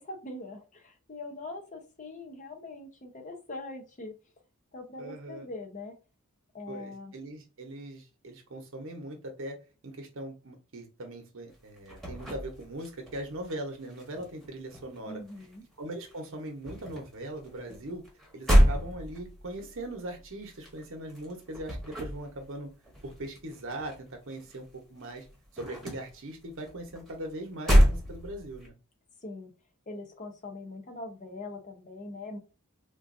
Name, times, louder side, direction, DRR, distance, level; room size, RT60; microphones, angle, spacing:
voice 1, 0.0-4.1 4.7-5.9 6.5-7.1 15.0-15.6 29.2-29.5 29.9-32.4, left 2 dB, 35° left, 3 dB, 0.7 m, -42 dB
voice 2, 5.0-5.5 6.7-9.6 9.8-15.2 15.8-18.0 18.3-22.7 23.0-25.3 25.5-28.7, right 1 dB, 60° right, 3 dB, 1.0 m, -40 dB
sound 1, 11.5-13.5 13.8-15.7 16.0-24.7 25.0-28.7, equal, ahead, 1.1 m, -28 dB
3.8 x 2.5 x 2.6 m, 0.32 s
head